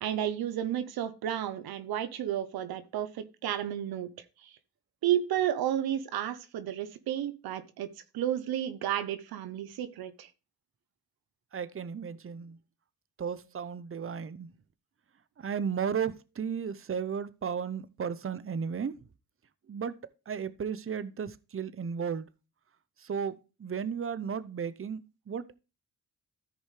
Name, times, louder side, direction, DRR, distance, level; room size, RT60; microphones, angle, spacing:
voice 1, 0.0-4.1 4.4-4.5 5.0-7.9 8.1-10.3, right 11 dB, 90° right, 0.8 m, -32 dB
voice 2, 11.5-12.6 13.2-14.5 15.4-18.9 19.7-19.9 20.3-22.3 23.0-25.6, right 7 dB, 35° right, 0.8 m, -34 dB
13.5 x 5.2 x 3.3 m
supercardioid pair, 50°, 36 cm